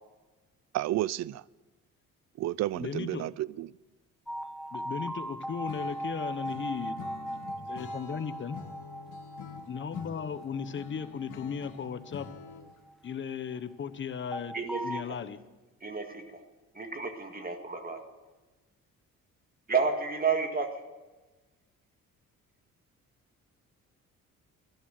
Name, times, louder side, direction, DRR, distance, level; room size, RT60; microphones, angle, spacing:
voice 1, 0.7-1.4 2.4-3.7, right 14 dB, 60° right, 0.5 m, -31 dB
voice 2, 2.8-3.3 4.7-7.0 7.6-8.6 9.7-12.3 13.0-14.5 14.8-15.4, left 7 dB, 40° left, 1.0 m, -36 dB
sound 1, 4.3-13.3 14.3-15.0, right 1 dB, ahead, 0.5 m, -39 dB
Acoustic guitar / Strum, 5.7-12.9, left 7 dB, 85° left, 1.7 m, -47 dB
voice 3, 14.5-15.0 15.8-16.4 16.7-18.0 19.7-20.7, right 5 dB, 30° right, 1.9 m, -31 dB
13.5 x 11.5 x 7.7 m
cardioid pair, 90°, 30 cm